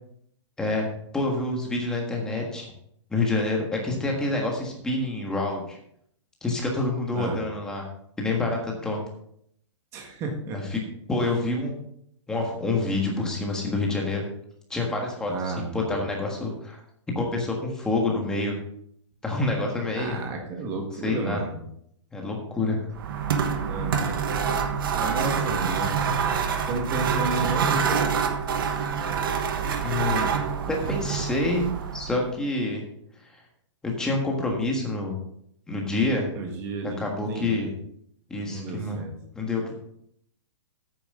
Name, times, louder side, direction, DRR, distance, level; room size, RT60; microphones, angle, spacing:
voice 1, 0.6-2.7 3.1-5.8 6.4-7.8 8.2-9.0 10.7-10.8 11.1-11.7 12.3-14.2 14.7-16.8 17.1-18.6 19.2-20.2 21.0-21.4 22.1-22.8 29.8-30.3 30.7-31.6 31.9-32.8 33.8-35.1 35.7-36.3 37.0-37.7 38.3-39.0 39.3-39.7, left 2 dB, 5° left, 0 dB, 1.5 m, -27 dB
voice 2, 9.9-10.7 15.3-16.0 19.9-21.6 23.7-24.1 24.9-26.1 26.6-28.1 36.3-37.7 38.5-39.1, right 3 dB, 15° right, 2 dB, 1.5 m, -32 dB
sound 1, 22.9-32.3, right 6 dB, 45° right, 1.2 m, -26 dB
11.0 x 9.1 x 3.7 m, 0.69 s
hypercardioid pair, 175°, 16 cm